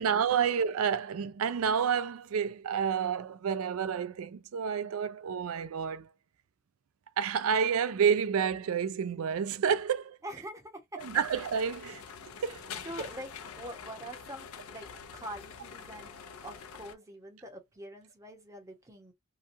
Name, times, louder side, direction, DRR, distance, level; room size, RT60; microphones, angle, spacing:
voice 1, 0.0-6.1 7.2-10.2 11.0-12.0 12.4-12.8, right 7 dB, 75° right, 0.4 m, -29 dB
voice 2, 10.2-11.0 12.8-19.1, right 1 dB, 15° right, 0.9 m, -44 dB
sound 1, 11.0-16.9, left 6 dB, 85° left, 0.5 m, -46 dB
2.9 x 2.2 x 2.6 m
head